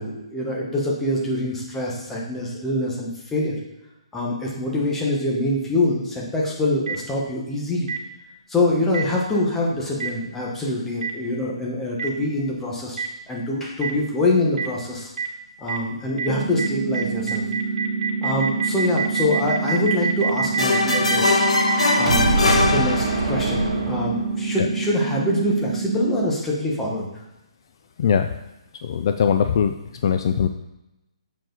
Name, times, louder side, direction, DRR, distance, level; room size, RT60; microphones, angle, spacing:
voice 1, 0.0-3.6 4.1-7.9 8.5-15.1 15.6-17.4 18.2-21.3 21.9-27.1, left 1 dB, 10° left, -3 dB, 1.2 m, -25 dB
Boom, 6.9-7.0 7.9-8.0 8.9-9.0 10.0-10.1 11.0-11.1 12.0-12.1 13.0-13.1 13.8-13.9 14.6-14.7 15.2-15.3 15.7-15.8 16.2-16.3 16.6-16.7 16.9-24.5, right 5 dB, 70° right, 2.0 m, -25 dB
sound 1, 16.3-26.3, right 4 dB, 50° right, 1.4 m, -27 dB
sound 2, 20.6-23.5, left 4 dB, 85° left, 0.9 m, -21 dB
voice 2, 28.0-28.4 28.7-30.5, left 7 dB, 45° left, 8 dB, 0.4 m, -21 dB
7.3 x 4.7 x 3.9 m, 0.93 s
hypercardioid pair, 160°, 3 cm